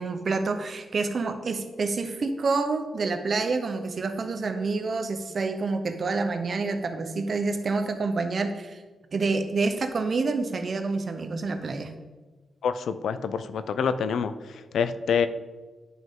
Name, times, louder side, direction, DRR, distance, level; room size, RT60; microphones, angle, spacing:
voice 1, 0.0-8.8 9.1-11.9, right 3 dB, 50° right, 8 dB, 0.8 m, -28 dB
voice 2, 12.6-15.3, left 6 dB, 85° left, 12 dB, 0.4 m, -27 dB
11.0 x 5.4 x 3.7 m, 1.3 s
wide cardioid pair, 115°, 0 cm